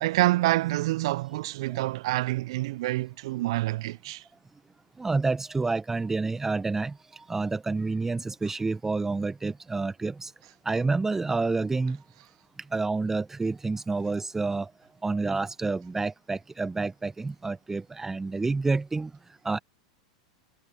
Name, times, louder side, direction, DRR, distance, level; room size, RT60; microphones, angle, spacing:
voice 1, 0.0-4.2, right 18 dB, 60° right, 0.4 m, -27 dB
voice 2, 5.0-10.3 10.6-12.0 12.7-14.7 15.0-19.1 19.4-19.6, right 3 dB, 10° right, 0.8 m, -29 dB
hypercardioid pair, 95°, 3 cm